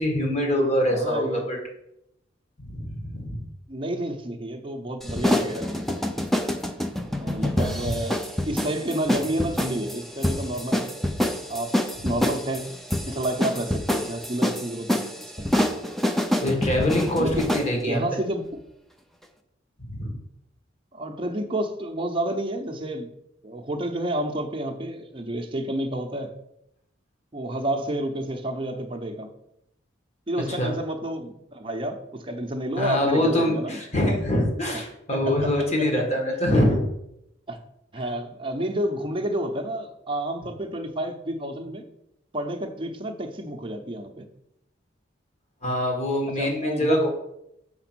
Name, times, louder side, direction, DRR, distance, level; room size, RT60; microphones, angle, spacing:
voice 1, 0.0-1.6 2.6-3.4 7.5-8.0 16.4-18.0 19.8-20.1 30.5-30.7 32.7-36.8 45.6-47.1, left 1 dB, 35° left, 1.6 m, -24 dB
voice 2, 0.9-1.5 3.7-6.0 7.1-10.9 11.5-12.6 13.1-15.1 15.4-15.6 17.2-17.5 17.8-18.5 20.9-23.1 23.4-26.3 27.3-29.3 30.3-33.8 35.1-36.0 37.5-37.6 37.9-41.8 42.3-44.3 46.4-47.1, right 1 dB, 25° right, 0.8 m, -30 dB
sound 1, 5.0-17.7, left 1 dB, ahead, 0.5 m, -27 dB
5.9 x 4.8 x 6.1 m
head